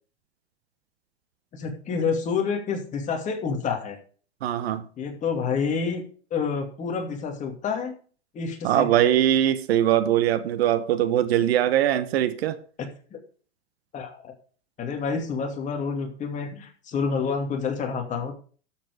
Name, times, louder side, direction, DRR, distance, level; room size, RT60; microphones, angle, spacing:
voice 1, 1.5-4.0 5.0-6.0 6.3-7.9 8.3-8.9 13.1-13.2 13.9-14.3 14.8-18.3, left 5 dB, 20° left, 2.6 m, -28 dB
voice 2, 4.4-4.8 8.6-12.6, right 11 dB, 65° right, 1.2 m, -21 dB
12.5 x 7.5 x 4.9 m
supercardioid pair, 145°, 33 cm